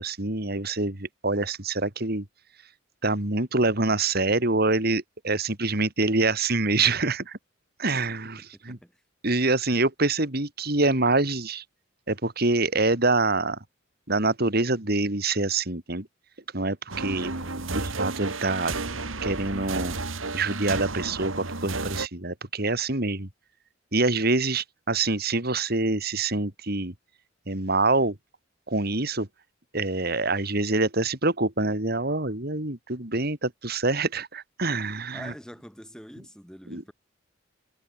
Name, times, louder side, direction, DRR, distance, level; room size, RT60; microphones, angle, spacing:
voice 1, 0.0-2.2 3.0-7.4 7.8-8.8 9.2-11.6 12.1-13.6 14.1-16.1 16.5-17.3 17.7-18.7 19.2-20.0 20.3-23.3 23.9-26.9 27.5-28.2 28.7-29.3 29.7-35.3 36.7-36.8, right 3 dB, 50° right, 3.1 m, -25 dB
voice 2, 8.5-9.0 17.3-17.7 35.1-36.9, equal, 5° left, 5.6 m, -45 dB
sound 1, 16.9-22.1, right 3 dB, 85° right, 2.8 m, -32 dB
head